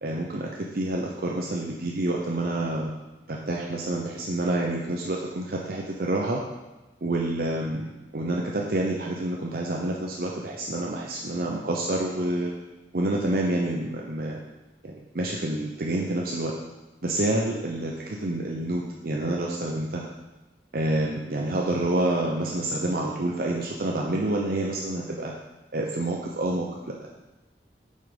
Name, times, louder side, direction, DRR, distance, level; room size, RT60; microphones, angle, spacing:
voice 1, 0.0-2.9 3.3-6.4 7.0-12.5 12.9-14.4 14.8-16.5 17.0-20.1 20.7-25.3 25.7-27.0, right 1 dB, 55° right, -1 dB, 0.7 m, -28 dB
7.3 x 5.5 x 5.1 m, 1.1 s
head